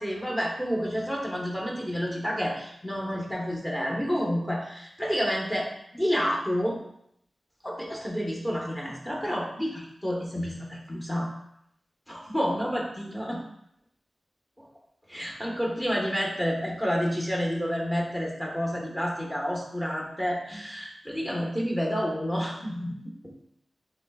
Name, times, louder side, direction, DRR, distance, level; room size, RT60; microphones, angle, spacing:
voice 1, 0.0-6.8 7.6-11.3 12.1-13.4 14.6-14.7 15.1-22.9, equal, 15° left, -3 dB, 1.3 m, -29 dB
6.2 x 3.3 x 2.4 m, 0.75 s
cardioid pair, 45°, 0 cm